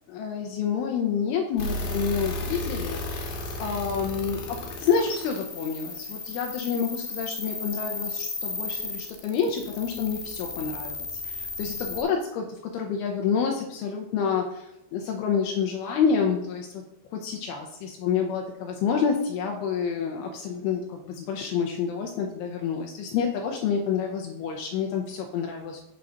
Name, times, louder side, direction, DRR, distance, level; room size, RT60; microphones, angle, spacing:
voice 1, 0.1-16.8 17.1-25.8, left 6 dB, 80° left, 2 dB, 2.5 m, -28 dB
sound 1, 1.6-12.0, left 3 dB, 65° left, 2.4 m, -34 dB
7.0 x 3.8 x 6.3 m, 0.86 s
omnidirectional pair, 4.8 m